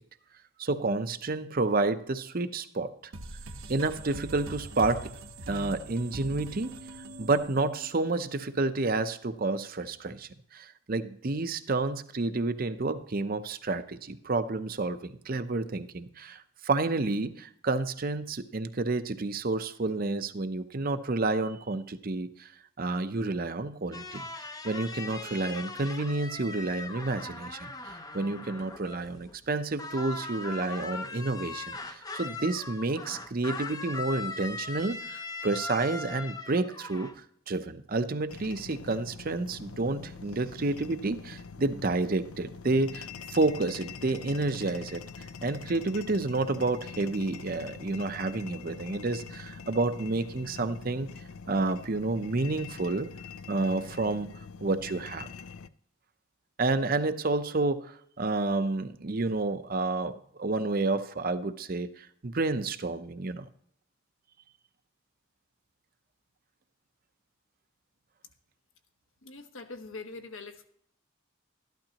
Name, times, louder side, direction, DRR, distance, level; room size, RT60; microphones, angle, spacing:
voice 1, 0.6-3.0 3.7-5.1 5.5-6.8 7.2-22.5 22.8-24.2 24.6-45.0 45.4-51.1 51.5-53.1 53.5-55.3 56.6-63.4, right 3 dB, 40° right, 10 dB, 0.6 m, -30 dB
sound 1, 3.1-8.4, right 2 dB, 70° right, 1.1 m, -43 dB
sound 2, 23.9-29.5 29.8-37.2, left 3 dB, 15° left, 0.6 m, -40 dB
sound 3, 38.3-55.7, left 5 dB, 85° left, 0.5 m, -44 dB
voice 2, 69.2-70.7, left 3 dB, 70° left, 7 dB, 1.1 m, -43 dB
13.0 x 11.5 x 2.9 m, 0.66 s
head